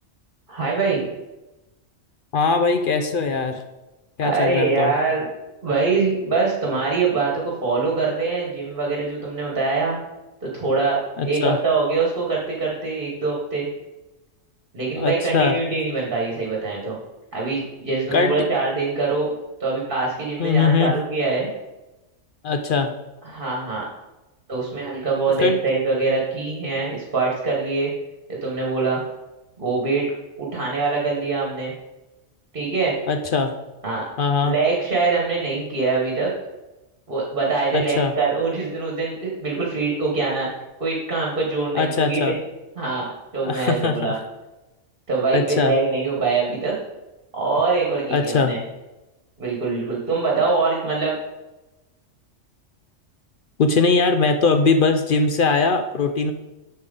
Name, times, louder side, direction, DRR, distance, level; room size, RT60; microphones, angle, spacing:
voice 1, 0.5-1.0 4.2-5.2 5.6-10.0 10.4-13.7 14.7-17.0 17.3-19.3 19.6-21.5 23.2-23.8 24.5-27.9 28.3-29.0 29.6-30.1 30.4-31.7 32.5-33.0 33.8-34.0 34.4-36.3 37.1-40.5 40.8-42.3 42.8-44.1 45.1-46.7 47.3-48.6 49.4-51.2, right 4 dB, 45° right, -3 dB, 1.5 m, -23 dB
voice 2, 2.3-3.6 4.2-4.9 11.2-11.6 14.9-15.6 18.1-18.4 20.4-20.9 22.4-22.9 25.4-25.6 33.1-33.5 34.2-34.6 37.7-38.1 41.7-42.4 43.4-44.1 45.3-45.8 48.1-48.6 53.6-56.3, left 4 dB, 60° left, 7 dB, 0.6 m, -20 dB
7.3 x 6.5 x 3.8 m, 1.0 s
omnidirectional pair, 1.3 m